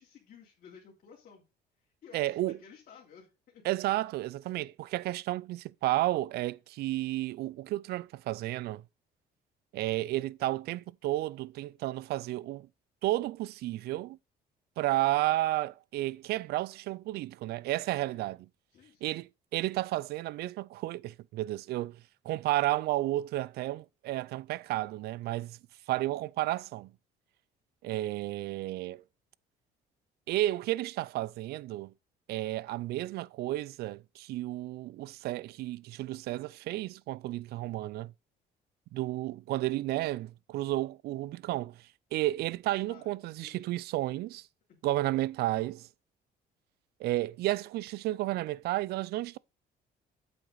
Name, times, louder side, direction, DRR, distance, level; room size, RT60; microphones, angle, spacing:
voice 1, 0.0-1.5 2.0-3.6 18.1-18.3 18.7-19.1 42.8-43.7 44.7-44.8, left 7 dB, 55° left, 3.3 m, -55 dB
voice 2, 2.1-2.6 3.6-8.8 9.7-12.7 13.0-14.2 14.8-18.5 19.0-25.6 25.9-26.9 27.8-29.0 30.3-31.9 32.3-38.1 38.9-44.5 44.8-45.9 47.0-49.4, right 16 dB, 70° right, 0.4 m, -32 dB
8.7 x 8.1 x 4.0 m
cardioid pair, 110°, 17 cm